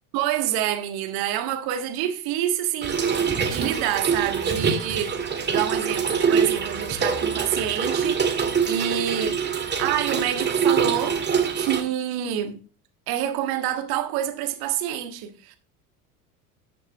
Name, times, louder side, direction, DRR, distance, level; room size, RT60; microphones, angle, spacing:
voice 1, 0.1-9.4 9.8-11.2 11.6-12.6 13.1-15.6, right 11 dB, 55° right, 1.7 m, -27 dB
Trickle dribble / Fill (with liquid), 2.8-11.8, right 6 dB, 25° right, 1.9 m, -24 dB
13.0 x 6.7 x 3.0 m
figure-of-eight pair, 70°, 45 cm